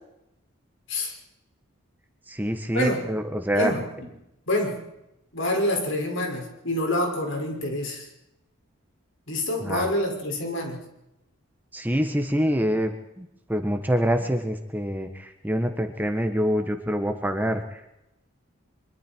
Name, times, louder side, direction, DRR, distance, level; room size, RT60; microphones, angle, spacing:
voice 1, 2.3-3.7 9.6-9.9 11.7-17.8, equal, 10° right, 6 dB, 1.4 m, -26 dB
voice 2, 5.3-8.1 9.3-10.8, left 1 dB, 65° left, 1 dB, 6.1 m, -26 dB
24.5 x 24.0 x 4.6 m, 0.87 s
head